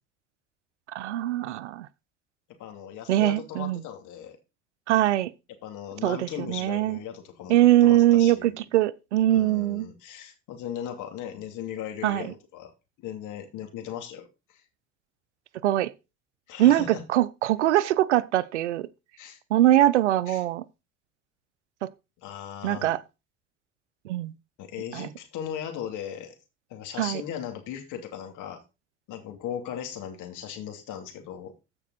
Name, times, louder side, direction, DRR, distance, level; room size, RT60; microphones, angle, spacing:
voice 1, 0.9-1.9 3.1-3.8 4.9-5.3 6.0-7.0 7.5-9.9 12.0-12.3 15.6-15.9 16.6-18.9 19.5-20.6 21.8-21.9 22.6-23.0 24.0-24.3 24.9-25.1 27.0-27.2, right 13 dB, 90° right, 0.6 m, -22 dB
voice 2, 2.6-4.4 5.6-8.5 9.3-12.7 13.0-14.6 16.5-17.0 19.2-19.4 20.3-20.4 22.2-22.9 24.6-26.4 26.7-28.6 29.1-31.5, left 9 dB, 60° left, 2.8 m, -38 dB
14.5 x 5.4 x 4.1 m
hypercardioid pair, 70°, 34 cm